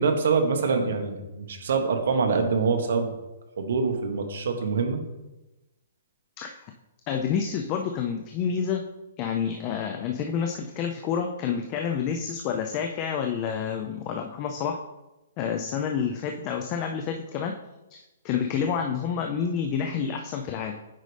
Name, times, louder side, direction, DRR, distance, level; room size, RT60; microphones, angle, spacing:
voice 1, 0.0-3.2 3.6-5.0, right 4 dB, 65° right, 5 dB, 1.2 m, -25 dB
voice 2, 7.1-8.8 9.2-14.8 15.4-17.5 17.9-20.8, left 7 dB, 25° left, 4 dB, 0.4 m, -29 dB
9.0 x 5.2 x 3.3 m, 1.0 s
hypercardioid pair, 170°, 0 cm